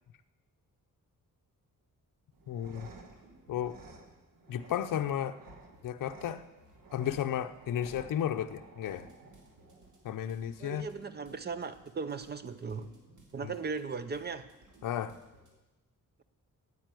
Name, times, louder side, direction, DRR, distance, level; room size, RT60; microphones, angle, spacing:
sound 1, 2.3-10.3, right 3 dB, 75° right, 1.3 m, -54 dB
voice 1, 2.5-2.9 3.5-3.8 4.5-5.4 5.8-6.4 6.9-9.1 10.0-10.9 13.4-13.5 14.8-15.2, left 10 dB, 70° left, 7 dB, 0.6 m, -33 dB
sound 2, 2.7-4.4 4.7-15.5, right 1 dB, 60° right, 3.0 m, -61 dB
voice 2, 10.6-12.9 13.3-14.5, right 5 dB, 30° right, 12 dB, 0.5 m, -37 dB
9.3 x 8.5 x 9.0 m, 1.0 s
wide cardioid pair, 175°, 34 cm